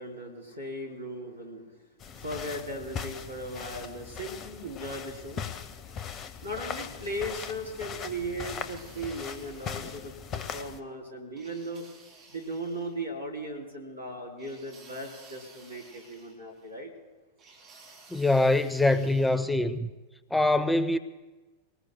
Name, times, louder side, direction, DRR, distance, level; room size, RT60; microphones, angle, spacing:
voice 1, 0.0-1.7 2.2-5.4 6.4-11.8 12.3-16.9, right 1 dB, 85° right, 0 dB, 3.4 m, -37 dB
sound 1, 2.0-10.8, left 7 dB, 30° left, 0.8 m, -39 dB
sound 2, 8.4-10.1 11.4-13.0 14.4-16.7 17.4-19.5, right 3 dB, 30° right, 5.3 m, -54 dB
voice 2, 18.1-19.9 20.3-21.0, left 2 dB, 5° left, 13 dB, 0.5 m, -24 dB
24.0 x 19.5 x 2.2 m, 1.2 s
figure-of-eight pair, 90°, 0 cm